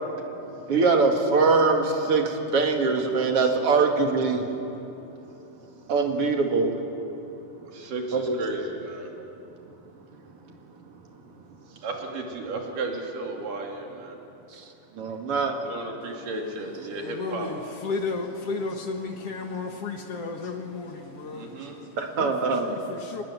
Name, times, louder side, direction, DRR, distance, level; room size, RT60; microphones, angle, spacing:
voice 1, 0.7-4.5 5.9-6.7 8.1-8.4 15.0-15.6 22.0-22.7, right 4 dB, 50° right, 3 dB, 2.6 m, -22 dB
voice 2, 7.7-9.1 11.7-14.2 15.6-17.5 21.3-21.8, right 2 dB, 85° right, 1 dB, 4.3 m, -34 dB
voice 3, 16.9-23.2, left 4 dB, 55° left, 4 dB, 2.1 m, -34 dB
24.0 x 20.5 x 9.5 m, 3.0 s
omnidirectional pair, 3.7 m